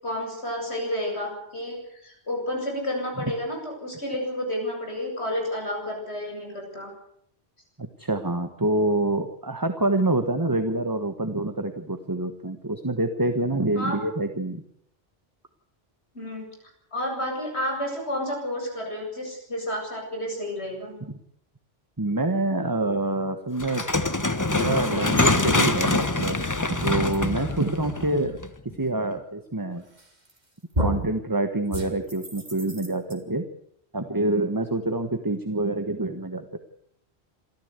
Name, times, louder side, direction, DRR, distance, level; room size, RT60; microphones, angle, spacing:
voice 1, 0.0-6.9 13.7-14.0 16.1-16.4 16.9-21.0, left 1 dB, 90° left, 1 dB, 8.4 m, -31 dB
voice 2, 7.8-14.6 21.0-21.1 22.0-23.8 24.4-26.4 26.7-28.4 28.8-29.8 30.8-33.5 33.9-36.4, right 2 dB, 20° right, 8 dB, 1.3 m, -26 dB
sound 1, 23.6-28.7, left 2 dB, 20° left, 1.0 m, -24 dB
sound 2, 30.0-30.4 30.7-31.2 31.7-33.1, equal, 40° right, 3.5 m, -30 dB
27.0 x 14.0 x 8.2 m, 0.73 s
omnidirectional pair, 1.1 m